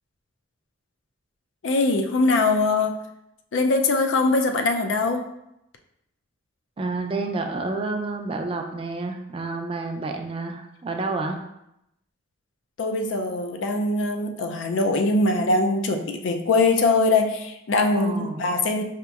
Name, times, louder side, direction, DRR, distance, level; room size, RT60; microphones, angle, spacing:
voice 1, 1.6-3.0 3.5-5.3 12.8-18.8, left 3 dB, 70° left, 5 dB, 0.4 m, -22 dB
voice 2, 6.8-11.4 17.9-18.4, right 3 dB, 30° right, 4 dB, 0.3 m, -29 dB
5.0 x 2.8 x 2.3 m, 0.85 s
head